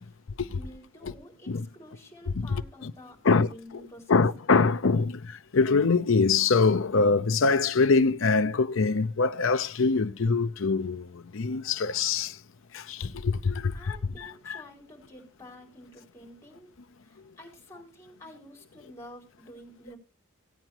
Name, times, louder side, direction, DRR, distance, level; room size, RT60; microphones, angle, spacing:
voice 1, 0.5-4.2 13.7-16.7 17.0-20.0, left 1 dB, 15° left, 4.4 m, -49 dB
voice 2, 2.4-2.9 3.2-3.8 4.1-12.4 12.7-14.6, left 4 dB, 65° left, 0.6 m, -24 dB
17.0 x 9.0 x 2.9 m
head